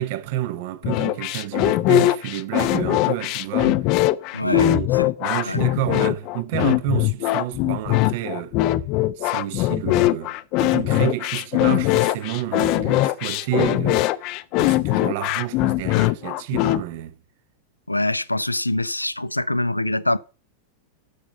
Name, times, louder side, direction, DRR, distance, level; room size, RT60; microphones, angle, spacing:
voice 1, 0.0-3.9 4.4-8.6 9.2-14.3 14.6-17.2, right 13 dB, 50° right, 0.9 m, -29 dB
sound 1, 0.8-16.8, left 16 dB, 40° left, 0.5 m, -21 dB
voice 2, 4.3-4.7 5.5-5.6 17.9-20.2, left 1 dB, 85° left, 0.5 m, -24 dB
9.9 x 7.1 x 5.9 m
figure-of-eight pair, 90°, 0 cm